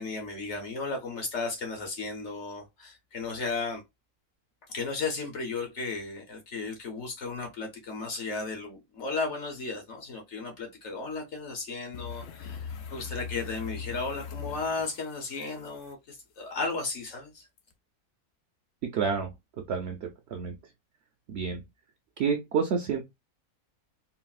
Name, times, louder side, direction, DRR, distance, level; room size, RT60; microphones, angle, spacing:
voice 1, 0.0-3.8 4.7-17.5, left 3 dB, 55° left, 1.0 m, -35 dB
sound 1, 11.9-15.9 17.6-17.7, left 6 dB, 75° left, 0.6 m, -40 dB
voice 2, 18.8-19.3 19.7-20.5 21.3-21.6 22.2-23.0, right 6 dB, 75° right, 0.6 m, -29 dB
3.9 x 2.0 x 2.4 m
omnidirectional pair, 1.6 m